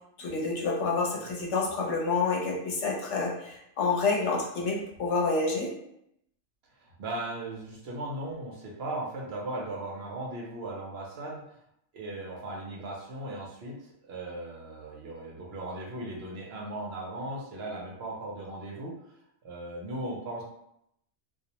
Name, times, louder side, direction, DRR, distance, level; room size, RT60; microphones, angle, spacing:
voice 1, 0.2-5.7, left 4 dB, 70° left, -2 dB, 0.9 m, -28 dB
voice 2, 6.7-11.4 11.9-18.9 19.4-20.4, right 1 dB, 65° right, -2 dB, 0.8 m, -37 dB
2.4 x 2.0 x 2.8 m, 0.77 s
omnidirectional pair, 1.3 m